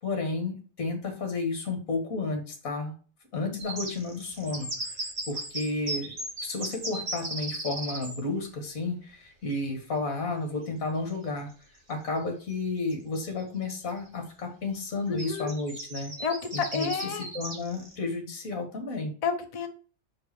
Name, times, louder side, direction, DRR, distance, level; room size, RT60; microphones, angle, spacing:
voice 1, 0.0-2.9 3.3-4.9 5.3-6.1 6.4-11.5 11.9-16.1 16.5-19.1, left 3 dB, 45° left, 4 dB, 2.2 m, -32 dB
sound 1, 3.6-8.2 10.6-10.7 11.1-11.2 12.5-12.6 12.9-13.4 13.9-14.1 15.2-17.9, right 2 dB, 40° right, 2.1 m, -36 dB
voice 2, 15.1-15.5 16.2-17.3 19.2-19.7, left 5 dB, 75° left, 6 dB, 0.3 m, -30 dB
5.4 x 5.2 x 6.0 m, 0.39 s
omnidirectional pair, 2.1 m